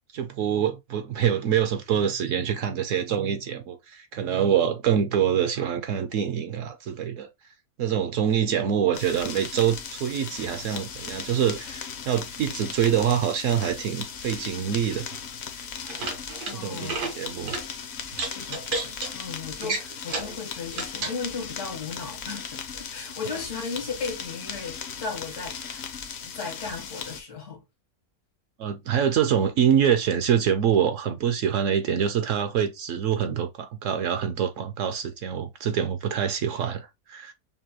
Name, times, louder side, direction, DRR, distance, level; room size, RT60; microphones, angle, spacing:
voice 1, 0.1-7.3 7.8-15.1 16.5-17.5 28.6-37.3, right 8 dB, 65° right, 0.9 m, -25 dB
sound 1, 8.9-27.2, left 6 dB, 55° left, 0.8 m, -38 dB
sound 2, 15.8-16.5 16.8-17.1 17.5-17.6 18.1-19.1 19.6-20.3 20.7-21.2, right 3 dB, 90° right, 1.7 m, -31 dB
voice 2, 16.5-17.0 18.2-25.8 26.2-27.6, left 4 dB, 80° left, 1.9 m, -36 dB
5.4 x 2.2 x 2.8 m
omnidirectional pair, 1.6 m